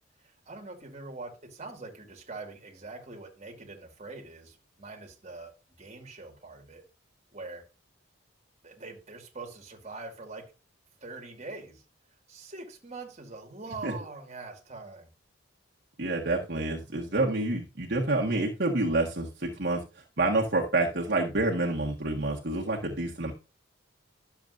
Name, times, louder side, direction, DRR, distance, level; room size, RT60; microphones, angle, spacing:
voice 1, 0.2-5.5 5.8-6.8 7.3-7.6 8.6-10.5 11.0-11.8 12.3-15.1, right 3 dB, 35° right, 2.1 m, -43 dB
voice 2, 16.0-19.8 20.2-23.3, right 2 dB, 50° right, 1.5 m, -28 dB
12.0 x 7.1 x 2.6 m
head